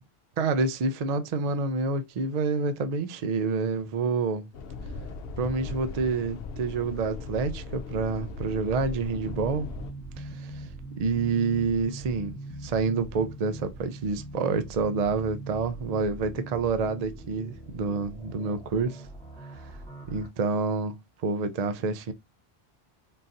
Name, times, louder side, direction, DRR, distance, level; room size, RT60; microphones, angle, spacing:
voice 1, 0.4-4.5 5.4-9.7 10.2-10.7 11.0-19.1 19.5-19.6 20.1-22.1, right 4 dB, 55° right, 0.5 m, -28 dB
sound 1, 4.5-9.9, left 3 dB, 70° left, 0.8 m, -38 dB
sound 2, 9.2-20.3, right 2 dB, 5° left, 1.1 m, -42 dB
3.8 x 2.7 x 2.5 m
omnidirectional pair, 1.1 m